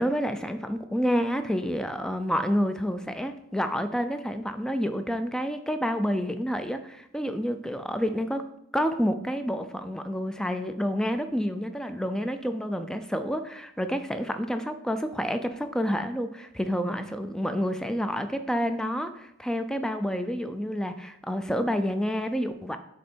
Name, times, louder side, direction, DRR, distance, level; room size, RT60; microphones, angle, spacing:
voice 1, 0.0-8.4 8.7-22.8, equal, 5° left, 8 dB, 0.3 m, -29 dB
6.4 x 4.2 x 4.4 m, 0.76 s
head